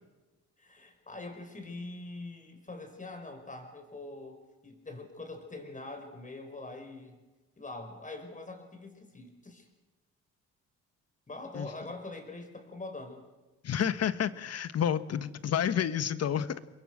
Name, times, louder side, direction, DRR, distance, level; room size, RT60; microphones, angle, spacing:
voice 1, 0.6-7.2 7.6-9.7 11.3-13.2, left 2 dB, 25° left, 6 dB, 5.4 m, -44 dB
voice 2, 13.6-16.6, left 9 dB, 55° left, 13 dB, 1.3 m, -30 dB
29.5 x 22.0 x 6.3 m, 1.2 s
cardioid pair, 90°, 30 cm